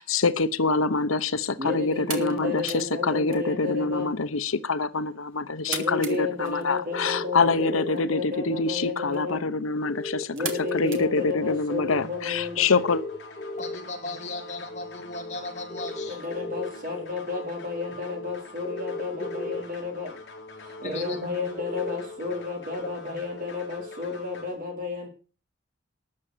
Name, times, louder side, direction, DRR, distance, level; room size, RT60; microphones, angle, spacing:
voice 1, 0.0-10.3 10.7-13.0, left 3 dB, 90° left, 13 dB, 0.9 m, -25 dB
sound 1, 0.5-11.9, right 6 dB, 75° right, 2.4 m, -43 dB
voice 2, 1.6-4.1 5.7-9.4 10.3-12.6 16.1-20.2 20.6-25.1, left 4 dB, 45° right, 3 dB, 3.9 m, -32 dB
sound 2, 6.9-7.9 9.8-10.8 12.8-13.8 15.7-16.7 18.6-19.6 21.6-22.0, left 2 dB, 10° left, 3.1 m, -35 dB
sound 3, 10.7-24.4, left 2 dB, 55° left, 4.2 m, -44 dB
voice 3, 13.6-16.2 20.8-21.3 22.8-22.9, left 2 dB, 35° left, 2 dB, 3.2 m, -36 dB
13.0 x 8.5 x 6.8 m, 0.37 s
head